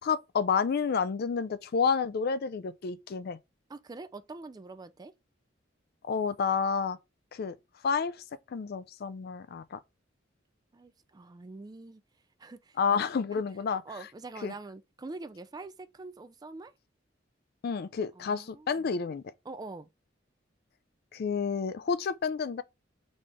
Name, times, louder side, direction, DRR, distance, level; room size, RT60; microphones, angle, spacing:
voice 1, 0.0-3.4 6.1-7.0 7.3-7.6 7.8-9.8 12.8-13.8 14.4-14.5 17.6-19.2 21.1-22.6, left 5 dB, 55° left, 0.4 m, -30 dB
voice 2, 3.7-5.1 10.7-12.0 12.4-13.0 13.9-16.7 18.1-18.9 19.5-19.9, right 3 dB, 20° right, 0.3 m, -44 dB
4.2 x 3.2 x 3.5 m
head